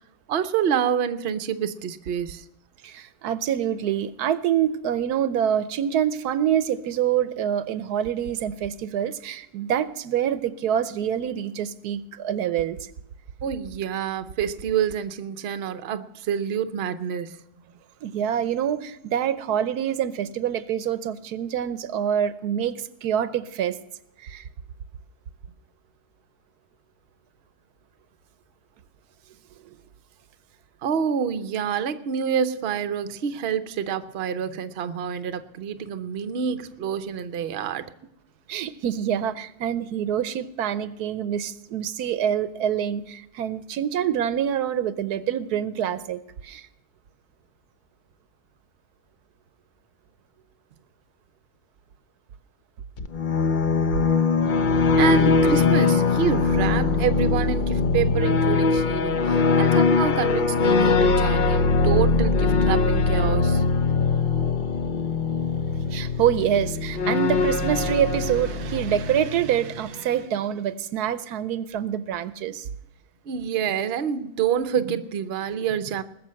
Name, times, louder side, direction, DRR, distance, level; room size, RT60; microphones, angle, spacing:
voice 1, 0.3-2.5 13.4-17.4 30.8-37.9 55.0-63.6 73.3-76.0, right 8 dB, 50° right, 0.8 m, -27 dB
voice 2, 2.8-12.9 18.0-23.8 24.2-24.4 38.5-46.7 65.9-72.7, right 9 dB, 85° right, 1.2 m, -26 dB
sound 1, 53.0-69.6, left 4 dB, 45° left, 0.6 m, -22 dB
20.0 x 6.7 x 7.6 m
omnidirectional pair, 1.6 m